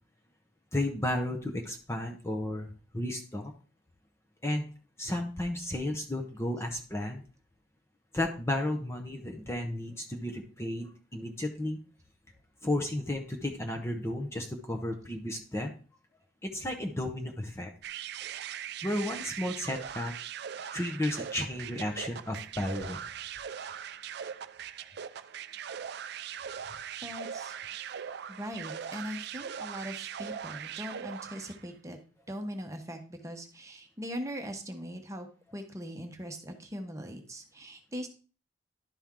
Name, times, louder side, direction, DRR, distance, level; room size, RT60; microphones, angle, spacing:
voice 1, 0.7-3.5 4.4-4.6 5.0-7.2 8.1-11.8 12.6-15.7 16.4-17.7 18.8-20.1 20.7-23.0, left 1 dB, 15° left, 2 dB, 0.8 m, -33 dB
sound 1, 17.8-31.7, right 8 dB, 60° right, 0.4 m, -40 dB
voice 2, 27.0-27.6 28.0-32.0 32.3-38.1, equal, 15° right, 4 dB, 1.0 m, -40 dB
11.5 x 4.4 x 3.7 m, 0.38 s
head